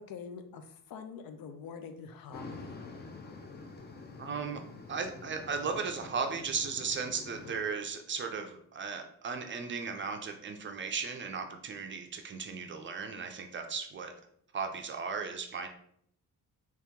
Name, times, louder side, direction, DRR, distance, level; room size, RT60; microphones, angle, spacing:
voice 1, 0.0-2.7, left 6 dB, 85° left, 7 dB, 0.5 m, -45 dB
sound 1, 2.3-7.6, left 3 dB, 30° left, 0.4 m, -47 dB
voice 2, 4.2-4.6 4.9-14.1 14.5-15.7, right 5 dB, 35° right, 5 dB, 0.4 m, -36 dB
3.0 x 2.9 x 3.5 m, 0.67 s
wide cardioid pair, 155°, 34 cm